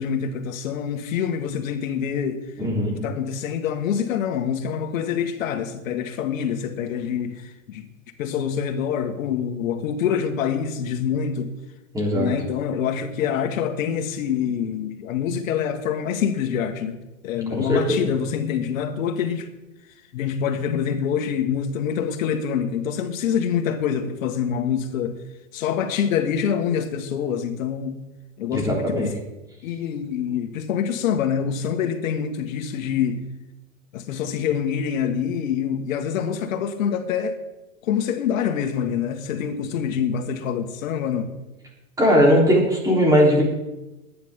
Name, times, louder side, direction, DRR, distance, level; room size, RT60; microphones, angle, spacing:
voice 1, 0.0-2.4 3.0-7.8 8.2-11.5 12.2-17.0 17.2-19.5 20.1-25.2 25.5-28.0 28.4-29.1 29.6-33.2 33.9-37.4 37.8-41.3, left 8 dB, 65° left, 1.9 m, -25 dB
voice 2, 2.6-2.9 11.9-12.3 17.5-18.0 28.5-29.1 42.0-43.4, equal, 10° right, 3.8 m, -19 dB
23.0 x 9.8 x 3.8 m
supercardioid pair, 145°, 43 cm